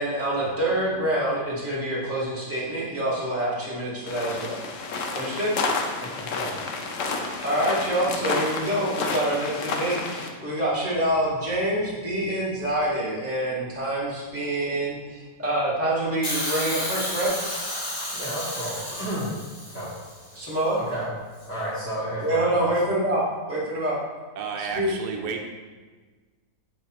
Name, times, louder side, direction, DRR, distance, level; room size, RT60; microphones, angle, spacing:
voice 1, 0.0-4.6 5.1-5.5 7.4-17.3 20.3-20.8 22.2-24.0 24.6-24.9, right 1 dB, 10° right, -6 dB, 1.6 m, -26 dB
sound 1, 4.1-10.3, left 3 dB, 60° left, 0.9 m, -30 dB
voice 2, 6.1-6.6 18.1-19.3 19.7-19.9 20.9-21.1 21.5-22.7 24.6-24.9, right 1 dB, 10° left, -12 dB, 1.7 m, -32 dB
Hiss, 16.2-20.4 21.4-21.5, left 1 dB, 25° left, 1.4 m, -32 dB
voice 3, 24.4-25.5, right 5 dB, 80° right, 3 dB, 1.3 m, -31 dB
8.2 x 5.3 x 3.0 m, 1.3 s
omnidirectional pair, 1.7 m